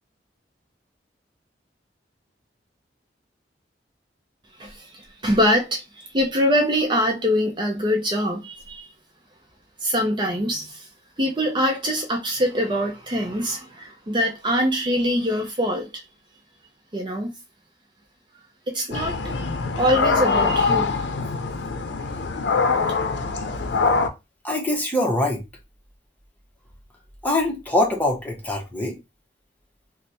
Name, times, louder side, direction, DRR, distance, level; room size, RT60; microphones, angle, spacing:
voice 1, 4.6-8.9 9.8-10.9 11.2-16.0 16.9-17.3 18.7-19.3 19.7-21.0, equal, 25° right, 0.6 m, -23 dB
sound 1, 18.9-24.1, left 4 dB, 85° left, 0.5 m, -23 dB
voice 2, 24.4-25.4 27.2-29.0, left 1 dB, 10° left, 0.9 m, -23 dB
3.2 x 2.1 x 4.1 m
head